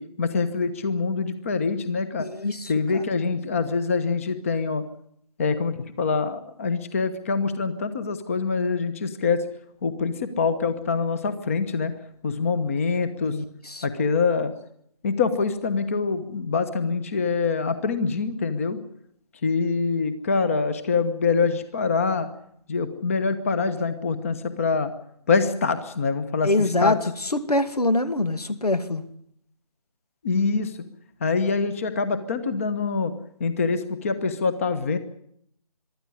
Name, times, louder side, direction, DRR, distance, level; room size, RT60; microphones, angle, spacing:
voice 1, 0.0-2.3 2.6-4.8 5.4-9.4 9.8-11.9 12.2-13.4 13.8-14.5 15.0-18.8 19.4-22.3 22.7-24.9 25.3-27.0 30.2-30.8 31.2-33.1 33.4-35.0, left 4 dB, 20° left, 12 dB, 1.1 m, -25 dB
voice 2, 2.2-3.0 13.3-13.8 26.4-29.0, left 2 dB, 85° left, 12 dB, 2.4 m, -25 dB
23.5 x 13.0 x 9.9 m, 0.70 s
figure-of-eight pair, 165°, 19 cm